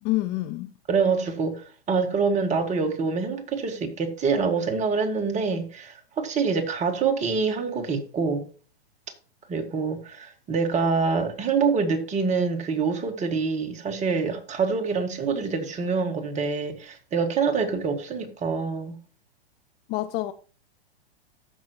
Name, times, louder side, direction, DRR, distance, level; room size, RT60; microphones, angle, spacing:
voice 1, 0.0-0.7 19.9-20.3, left 17 dB, 35° left, 0.5 m, -27 dB
voice 2, 0.9-8.5 9.5-18.9, right 5 dB, 20° right, 1.8 m, -26 dB
14.5 x 6.2 x 3.0 m
hypercardioid pair, 115°, 31 cm